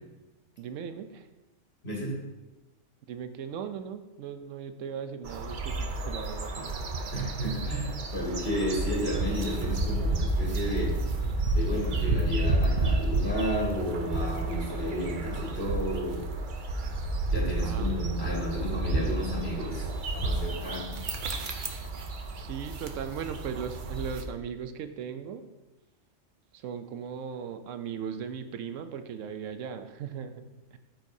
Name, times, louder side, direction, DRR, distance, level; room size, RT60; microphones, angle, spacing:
voice 1, 0.6-1.3 3.1-6.5 17.6-18.2 22.4-25.5 26.5-30.4 30.7-30.8, right 7 dB, 80° right, 9 dB, 0.9 m, -38 dB
voice 2, 1.8-2.2 6.6-11.0 11.5-16.3 17.3-19.9 20.2-21.0 21.6-21.7, equal, 55° left, -4 dB, 2.3 m, -32 dB
sound 1, 5.2-24.2, right 2 dB, 50° right, 0.7 m, -30 dB
13.0 x 4.6 x 2.7 m, 1.1 s
omnidirectional pair, 1.3 m